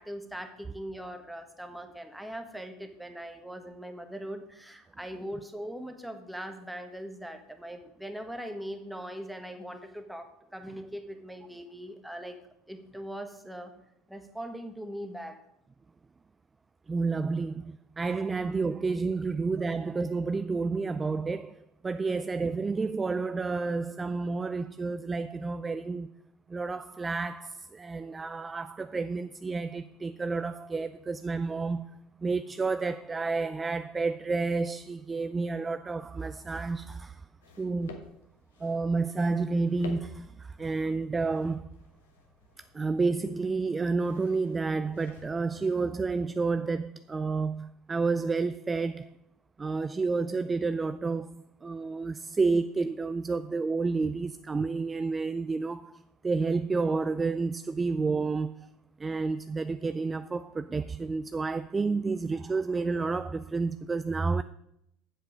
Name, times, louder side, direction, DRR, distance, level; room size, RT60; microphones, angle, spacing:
voice 1, 0.0-12.4 12.7-13.7 14.1-15.4 18.1-18.3 19.6-19.7, equal, 5° right, 1.4 m, -41 dB
voice 2, 16.9-26.1 26.5-37.2 37.6-38.2 38.6-41.7 42.7-49.1 49.6-58.7 59.0-64.4, right 4 dB, 20° right, 0.3 m, -30 dB
sound 1, 37.4-46.7, left 5 dB, 75° left, 1.3 m, -52 dB
8.7 x 7.7 x 5.1 m
figure-of-eight pair, 75°, 0 cm